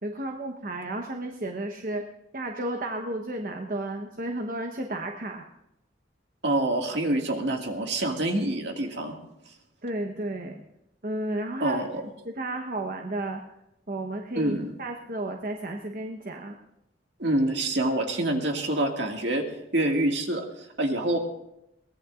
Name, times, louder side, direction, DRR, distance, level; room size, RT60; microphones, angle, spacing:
voice 1, 0.0-2.0 2.3-5.4 9.8-10.6 11.0-11.8 12.2-13.4 13.9-14.5 14.8-16.6, right 1 dB, 50° right, 3 dB, 1.1 m, -32 dB
voice 2, 6.4-9.2 11.6-11.9 14.4-14.7 17.2-19.4 19.7-21.2, right 1 dB, 70° right, 2 dB, 2.1 m, -26 dB
22.5 x 18.0 x 2.5 m, 0.85 s
head